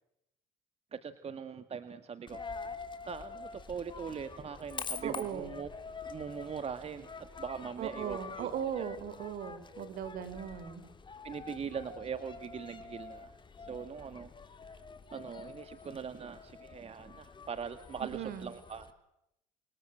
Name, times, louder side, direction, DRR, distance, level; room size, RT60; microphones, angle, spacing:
voice 1, 0.9-2.4 3.0-5.7 6.1-8.5 8.8-8.9 11.2-13.3 13.6-14.3 14.6-14.8 15.1-18.9, right 6 dB, 40° right, 10 dB, 2.1 m, -41 dB
Coin (dropping), 2.3-18.9, left 4 dB, 30° left, 3.3 m, -46 dB
voice 2, 5.0-5.5 7.8-10.8 18.0-18.5, right 9 dB, 65° right, 13 dB, 4.9 m, -38 dB
29.0 x 24.0 x 7.7 m, 0.84 s
supercardioid pair, 85°, 16 cm